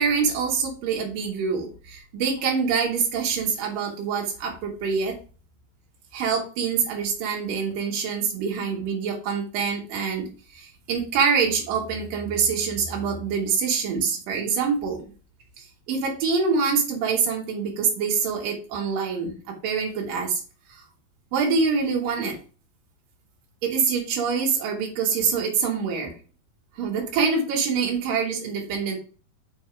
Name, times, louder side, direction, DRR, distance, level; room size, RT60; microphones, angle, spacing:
voice 1, 0.0-5.2 6.1-10.3 10.5-15.0 15.6-20.4 21.3-22.4 23.6-26.1 26.8-29.0, right 5 dB, 75° right, -2 dB, 3.3 m, -25 dB
6.4 x 3.6 x 4.6 m, 0.36 s
omnidirectional pair, 4.0 m